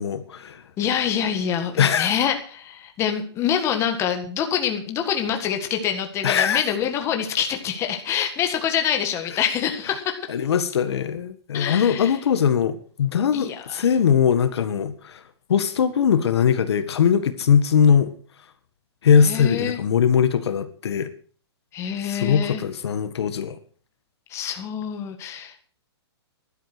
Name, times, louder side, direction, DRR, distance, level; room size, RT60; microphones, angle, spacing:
voice 1, 0.0-0.6 1.8-2.1 6.2-6.6 10.3-15.2 15.5-18.1 19.0-21.1 22.0-23.6, left 7 dB, 70° left, 11 dB, 1.7 m, -20 dB
voice 2, 0.8-10.2 11.5-12.1 13.3-13.8 19.2-19.8 21.7-22.6 24.3-25.6, left 8 dB, 20° left, 5 dB, 1.7 m, -26 dB
12.5 x 11.5 x 6.1 m, 0.43 s
hypercardioid pair, 155°, 14 cm